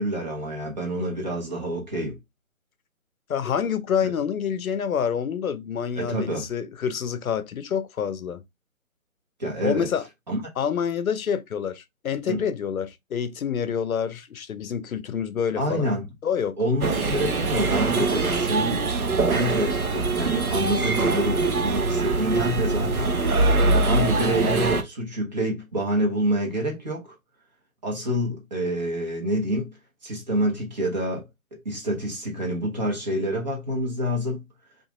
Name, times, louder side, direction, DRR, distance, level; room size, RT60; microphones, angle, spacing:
voice 1, 0.0-2.2 4.0-4.1 6.0-6.5 9.4-9.9 10.3-10.4 12.3-12.4 15.6-16.1 16.6-23.1 23.8-27.1 27.8-29.8 30.0-31.3 31.5-34.4, equal, 30° right, 0.9 m, -27 dB
voice 2, 3.3-8.4 9.6-10.1 10.6-15.9 16.2-16.6, left 7 dB, 75° left, 0.6 m, -27 dB
sound 1, 16.8-24.8, right 3 dB, 85° right, 0.7 m, -23 dB
2.8 x 2.5 x 2.4 m
figure-of-eight pair, 150°, 42 cm